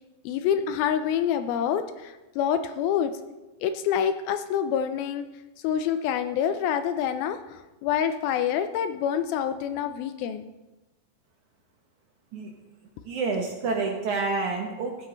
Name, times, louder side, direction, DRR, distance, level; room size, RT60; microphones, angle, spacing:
voice 1, 0.3-3.1 3.6-5.3 5.6-10.5, left 9 dB, 80° left, 9 dB, 2.3 m, -27 dB
voice 2, 13.1-15.1, right 4 dB, 65° right, 1 dB, 2.0 m, -28 dB
15.5 x 7.9 x 3.9 m, 1.1 s
omnidirectional pair, 4.5 m